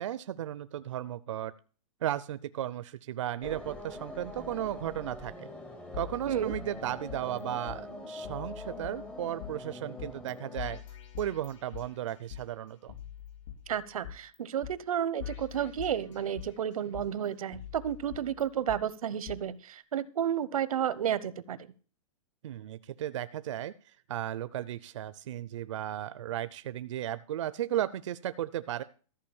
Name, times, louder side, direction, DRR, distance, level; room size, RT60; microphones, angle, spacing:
voice 1, 0.0-1.5 2.0-5.5 5.9-10.8 11.2-12.9 22.4-23.7 24.1-28.8, right 12 dB, 60° right, 15 dB, 0.5 m, -35 dB
sound 1, 3.4-10.8, left 1 dB, 5° left, 0.6 m, -44 dB
sound 2, 5.9-7.4 7.7-7.8 8.2-9.5 10.0-10.3 10.6-12.4 12.9-14.4 14.6-14.7 15.2-16.6 16.9-18.8 19.3-19.4, left 10 dB, 60° left, 4.1 m, -44 dB
voice 2, 13.7-21.6, right 9 dB, 90° right, 17 dB, 0.9 m, -32 dB
14.0 x 4.9 x 8.7 m, 0.39 s
hypercardioid pair, 175°, 18 cm